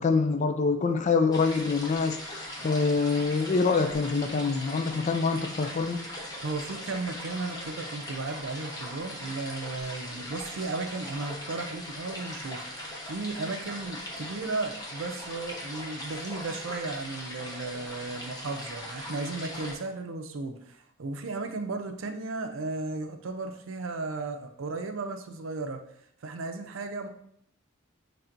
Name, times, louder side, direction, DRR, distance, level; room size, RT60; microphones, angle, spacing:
voice 1, 0.0-6.0, left 4 dB, 35° left, 7 dB, 0.3 m, -25 dB
sound 1, 1.3-19.7, left 1 dB, 20° left, 0.8 m, -40 dB
voice 2, 6.4-25.8 26.2-27.1, right 3 dB, 75° right, 6 dB, 0.5 m, -35 dB
5.8 x 3.3 x 2.6 m, 0.69 s
head